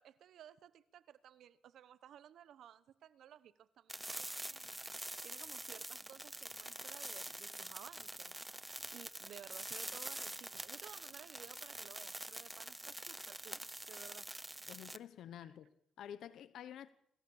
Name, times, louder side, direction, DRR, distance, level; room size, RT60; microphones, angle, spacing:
voice 1, 0.0-8.4 8.9-13.6 13.9-14.3, right 10 dB, 70° right, 1.0 m, -57 dB
sound 1, 3.9-15.0, right 1 dB, 10° right, 0.9 m, -46 dB
voice 2, 14.7-16.9, left 10 dB, 75° left, 1.0 m, -50 dB
26.5 x 16.5 x 7.2 m
cardioid pair, 90°, 0 cm